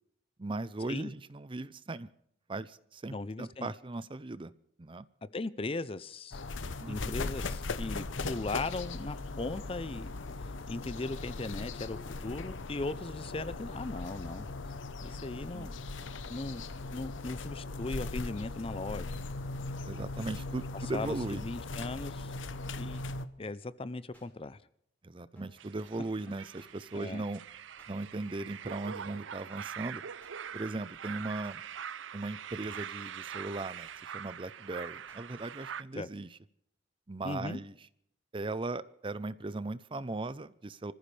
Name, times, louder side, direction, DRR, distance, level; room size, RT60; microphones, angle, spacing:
voice 1, 0.4-2.1 2.5-4.5 4.8-5.1 6.8-7.2 15.5-15.7 19.9-21.4 25.0-27.4 27.9-30.0 30.5-31.6 32.1-36.3 37.1-37.7 38.3-40.9, right 2 dB, 25° right, 0.5 m, -38 dB
voice 2, 3.1-3.7 5.2-6.4 6.9-10.1 10.4-14.5 15.0-15.7 16.3-19.1 20.9-22.3 22.7-23.0 23.4-24.6 26.9-27.2 36.0-36.1 37.2-37.6, left 2 dB, 30° left, 0.5 m, -38 dB
sound 1, 6.3-23.3, left 3 dB, 85° left, 0.9 m, -39 dB
sound 2, 22.9-23.1 24.1-24.3 25.3-25.7 26.6-26.7 27.8-27.9 29.0-29.3 30.2-30.4 31.4-31.6 32.6-33.0 33.8-34.0 35.1-35.2, right 1 dB, 10° left, 4.6 m, -60 dB
sound 3, 25.6-35.8, right 8 dB, 80° right, 0.5 m, -43 dB
27.0 x 14.5 x 3.3 m
head